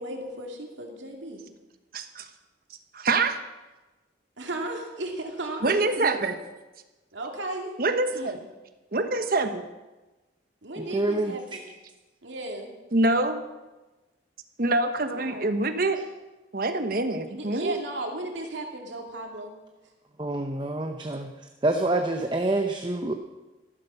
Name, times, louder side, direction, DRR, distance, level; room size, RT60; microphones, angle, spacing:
voice 1, 0.0-1.5 4.4-6.3 7.1-7.7 8.1-8.5 10.6-11.6 12.2-12.7 15.1-15.6 17.3-19.5, right 1 dB, 80° right, 2 dB, 2.5 m, -35 dB
voice 2, 1.9-2.3 2.9-3.4 5.6-6.3 7.8-8.4 8.9-9.7 12.9-13.4 14.6-16.0 16.5-17.8, right 2 dB, 50° right, 8 dB, 1.1 m, -25 dB
voice 3, 10.8-11.6 20.2-21.3 21.6-23.1, right 2 dB, 25° right, 5 dB, 0.7 m, -27 dB
13.5 x 12.5 x 5.5 m, 1.1 s
head